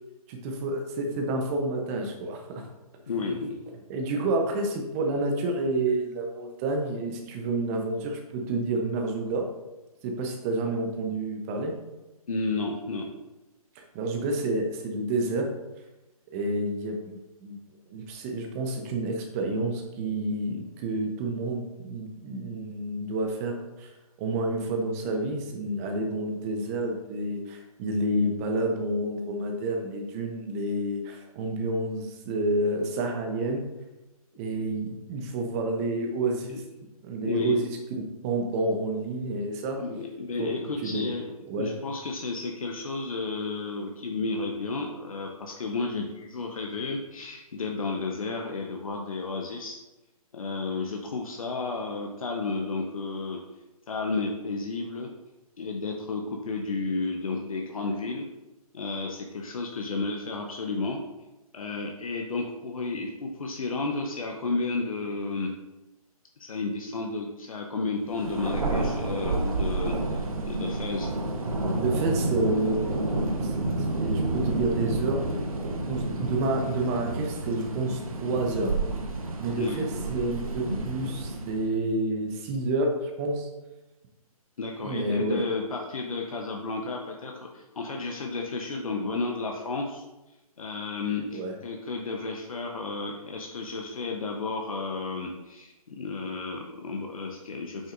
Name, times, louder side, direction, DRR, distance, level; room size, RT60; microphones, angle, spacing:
voice 1, 0.3-2.6 3.9-9.5 10.0-11.7 13.7-15.5 16.3-17.6 17.9-33.6 34.4-36.6 37.0-37.7 38.0-39.8 40.4-40.5 40.8-41.0 41.5-41.7 71.7-73.0 73.4-75.2 75.9-78.7 79.4-83.5 84.8-85.4 91.3-91.6, right 2 dB, 25° right, 3 dB, 0.9 m, -29 dB
voice 2, 3.1-3.6 12.3-13.1 34.6-34.7 36.5-36.6 37.2-37.6 39.8-49.8 50.3-53.4 53.9-55.1 55.6-58.2 58.7-61.0 61.5-65.5 66.4-71.2 79.6-79.8 84.6-90.0 90.6-97.9, left 3 dB, 65° left, 1 dB, 1.0 m, -32 dB
Thunder, 68.1-81.7, right 2 dB, 65° right, 1.3 m, -30 dB
8.2 x 6.3 x 2.6 m, 1.0 s
figure-of-eight pair, 140°, 19 cm